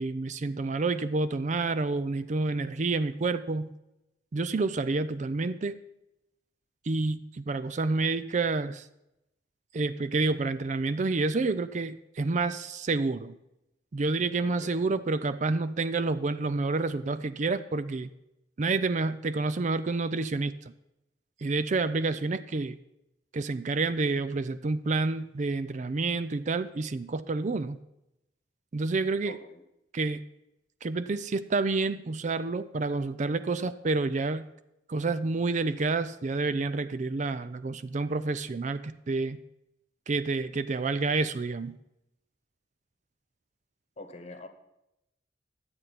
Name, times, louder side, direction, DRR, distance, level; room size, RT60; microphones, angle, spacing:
voice 1, 0.0-3.7 4.3-5.8 6.9-8.8 9.7-13.3 13.9-18.1 18.6-20.5 21.4-22.8 23.3-27.8 28.7-29.4 29.9-30.2 30.8-34.5 34.9-39.4 40.1-41.8, right 3 dB, 45° right, 13 dB, 0.4 m, -29 dB
voice 2, 14.4-14.8 29.2-29.6 44.0-44.5, left 2 dB, 40° left, 7 dB, 1.2 m, -45 dB
11.5 x 7.9 x 5.7 m, 0.87 s
head